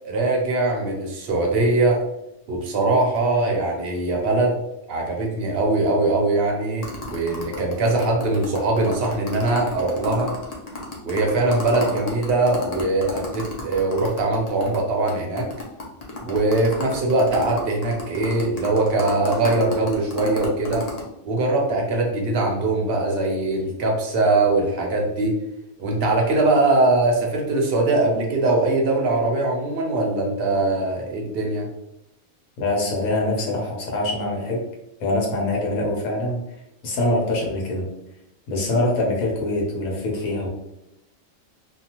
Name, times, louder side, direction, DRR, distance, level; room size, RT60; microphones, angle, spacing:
voice 1, 0.0-2.0 2.5-4.6 4.9-10.3 11.0-15.5 16.2-20.9 21.2-25.4 25.8-31.7, right 2 dB, 55° right, 0 dB, 0.7 m, -21 dB
sound 1, 6.8-14.8 15.1-15.2 15.4-21.0, left 3 dB, 60° left, 0.4 m, -33 dB
voice 2, 32.6-34.6 35.0-36.4 36.8-37.9 38.5-40.5, left 1 dB, 80° left, -2 dB, 1.2 m, -24 dB
2.7 x 2.3 x 2.8 m, 0.86 s
omnidirectional pair, 1.5 m